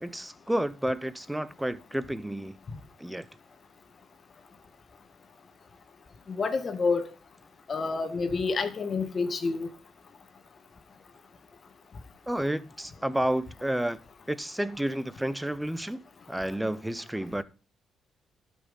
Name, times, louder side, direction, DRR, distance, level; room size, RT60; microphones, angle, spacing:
voice 1, 0.0-2.5 3.0-3.3 12.3-14.0 14.3-16.0 16.3-17.4, right 1 dB, 5° right, 0.8 m, -30 dB
voice 2, 6.4-7.1 7.7-9.7, left 4 dB, 40° left, 1.9 m, -28 dB
12.0 x 6.0 x 5.4 m
cardioid pair, 90°, 0 cm